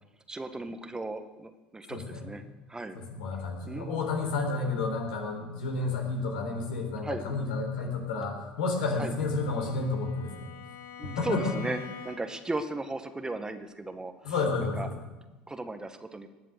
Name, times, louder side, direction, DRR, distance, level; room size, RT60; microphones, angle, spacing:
voice 1, 0.3-2.4 2.7-3.0 3.7-4.0 7.0-7.2 9.0-9.1 11.0-11.8 12.0-14.3 14.8-14.9 15.5-16.3, right 2 dB, 15° right, 8 dB, 1.2 m, -36 dB
voice 2, 1.9-2.3 2.9-10.5 11.0-11.5 14.2-14.9, left 3 dB, 75° left, 2 dB, 3.8 m, -31 dB
Bowed string instrument, 8.7-12.5, left 7 dB, 60° left, 2.1 m, -46 dB
20.0 x 7.6 x 6.6 m, 1.1 s
hypercardioid pair, 70°, 5 cm